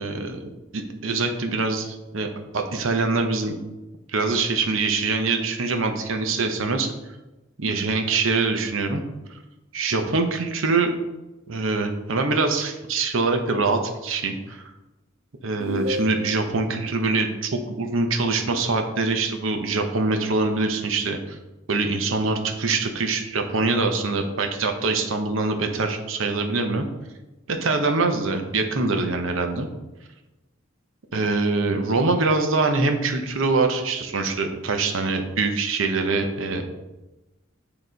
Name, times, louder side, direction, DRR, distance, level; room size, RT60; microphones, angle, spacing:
voice 1, 0.0-3.6 4.1-6.9 7.6-9.0 9.7-10.9 11.5-14.6 15.4-21.4 21.7-26.9 27.5-29.7 31.1-36.6, right 3 dB, 80° right, 5 dB, 0.8 m, -24 dB
sound 1, 15.6-16.6, equal, 55° right, 0.7 m, -29 dB
8.7 x 3.0 x 3.9 m, 1.0 s
head